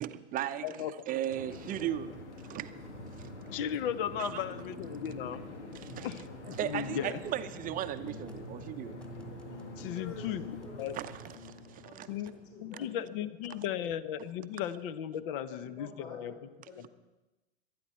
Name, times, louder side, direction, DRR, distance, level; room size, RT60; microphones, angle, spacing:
voice 1, 0.0-2.1 2.5-2.8 3.2-3.3 4.2-4.4 5.8-6.1 6.6-9.0 10.9-12.1, right 12 dB, 25° right, 10 dB, 0.7 m, -36 dB
voice 2, 0.6-0.9 3.5-5.4 6.0-7.2 9.8-10.4 10.8-11.0 12.1-12.3 12.6-16.3 16.8-16.9, left 10 dB, 50° left, 15 dB, 1.0 m, -36 dB
sound 1, 1.3-13.1, left 1 dB, 85° left, 2.4 m, -45 dB
voice 3, 6.9-7.4 9.8-11.1 11.3-11.4 11.8-14.0 15.3-16.9, left 4 dB, 35° left, 0 dB, 5.6 m, -51 dB
sound 2, 8.1-8.4 9.0-9.9 10.6-11.4 12.1-12.4, left 1 dB, 5° left, 1.8 m, -60 dB
24.0 x 9.6 x 4.4 m, 1.0 s
hypercardioid pair, 110°, 34 cm